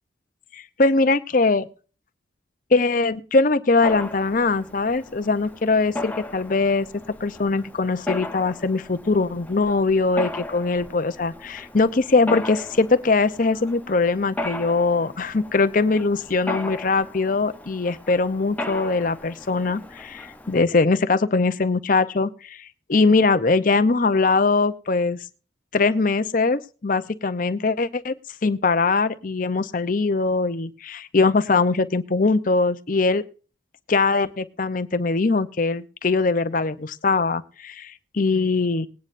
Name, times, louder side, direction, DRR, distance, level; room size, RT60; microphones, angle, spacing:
voice 1, 0.5-1.7 2.7-6.9 7.2-25.3 25.7-28.1 28.4-33.2 33.9-38.9, left 3 dB, 45° left, 11 dB, 0.7 m, -21 dB
Mechanisms, 3.8-20.6, left 1 dB, 10° left, 0.7 m, -36 dB
20.0 x 9.5 x 2.6 m, 0.37 s
head